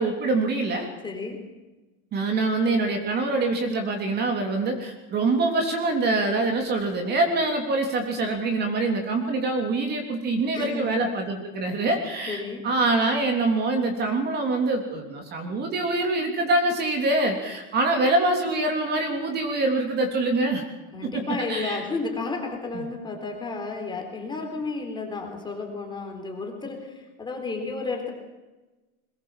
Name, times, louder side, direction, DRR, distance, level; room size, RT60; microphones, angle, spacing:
voice 1, 0.0-0.9 2.1-20.6 21.1-21.8 22.7-22.8, right 2 dB, 25° right, 4 dB, 3.3 m, -25 dB
voice 2, 1.0-1.4 10.5-11.0 12.3-12.7 20.9-28.1, left 3 dB, 10° left, 3 dB, 3.9 m, -32 dB
22.0 x 20.5 x 7.5 m, 1.1 s
supercardioid pair, 160°, 37 cm